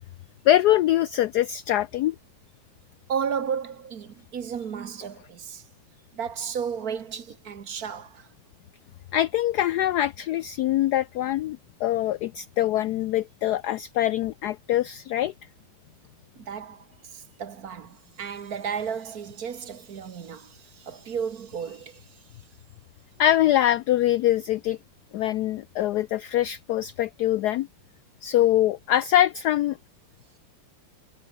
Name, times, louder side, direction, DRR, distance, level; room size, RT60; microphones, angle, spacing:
voice 1, 0.4-2.1 9.1-15.3 23.2-24.8 25.1-27.7 28.2-29.8, left 13 dB, 90° left, 0.8 m, -23 dB
voice 2, 3.1-5.6 6.1-8.3 16.4-16.9 17.1-22.0, right 7 dB, 50° right, 1.5 m, -33 dB
omnidirectional pair, 2.3 m